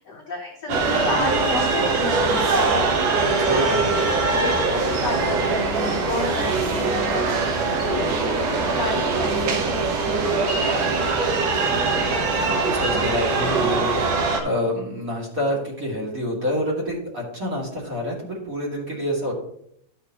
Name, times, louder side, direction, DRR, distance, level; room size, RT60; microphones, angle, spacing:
voice 1, 0.0-4.0 4.4-7.6 7.8-10.2 10.7-11.2 11.7-13.1 13.8-13.9, left 3 dB, 65° left, -1 dB, 1.0 m, -32 dB
sound 1, 0.7-14.4, right 3 dB, 65° right, 2.2 m, -22 dB
voice 2, 3.4-4.2 12.3-19.3, left 1 dB, 30° right, -4 dB, 2.4 m, -28 dB
12.0 x 6.6 x 3.0 m, 0.72 s
omnidirectional pair, 3.6 m